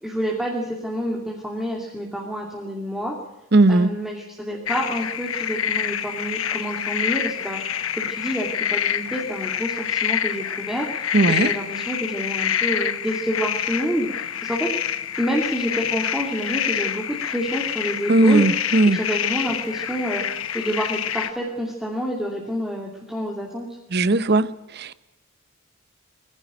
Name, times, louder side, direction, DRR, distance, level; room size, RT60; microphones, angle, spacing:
voice 1, 0.0-3.1 3.7-14.7 15.2-18.5 18.8-20.2 20.5-23.7, equal, ahead, 2.6 m, -28 dB
voice 2, 3.5-3.9 11.1-11.5 18.1-19.0 23.9-25.0, right 2 dB, 55° right, 0.9 m, -18 dB
sound 1, 4.7-21.3, left 9 dB, 75° left, 1.2 m, -27 dB
21.0 x 15.0 x 9.2 m
head